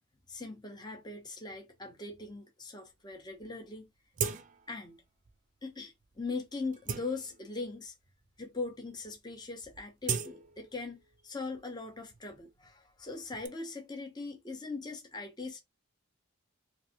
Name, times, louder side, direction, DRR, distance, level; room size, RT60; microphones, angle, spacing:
voice 1, 0.3-3.9 4.7-5.0 5.6-7.9 8.4-15.6, left 3 dB, 20° left, 0.6 m, -40 dB
sound 1, 3.1-3.2 3.4-3.5 4.1-4.8 5.2-5.4 6.0-6.2 6.6-7.7 8.4-8.5 8.8-9.1 9.4-11.2 11.5-13.5, right 6 dB, 35° right, 0.4 m, -39 dB
3.2 x 2.5 x 2.7 m
head